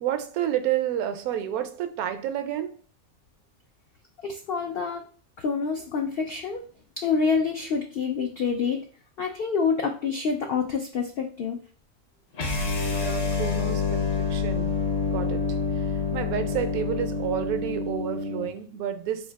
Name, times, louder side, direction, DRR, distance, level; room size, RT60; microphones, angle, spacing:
voice 1, 0.0-2.8 12.9-14.8 15.1-19.3, right 10 dB, 80° right, 9 dB, 1.0 m, -30 dB
voice 2, 4.2-5.0 5.4-6.6 7.0-8.9 9.2-11.6, left 5 dB, 75° left, 4 dB, 0.5 m, -27 dB
sound 1, 12.3-18.5, left 4 dB, 50° left, 1.0 m, -27 dB
3.4 x 2.7 x 4.5 m, 0.41 s
omnidirectional pair, 1.5 m